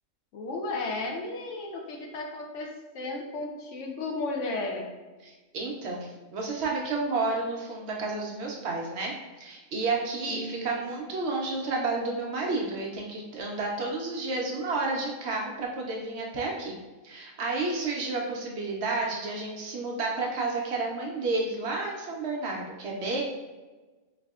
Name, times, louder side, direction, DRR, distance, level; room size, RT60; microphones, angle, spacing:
voice 1, 0.3-4.9 10.3-10.8, left 2 dB, 70° left, 1 dB, 0.9 m, -34 dB
voice 2, 5.2-16.8 17.0-23.2, right 3 dB, 65° right, -1 dB, 0.8 m, -31 dB
4.0 x 2.6 x 2.3 m, 1.2 s
omnidirectional pair, 1.4 m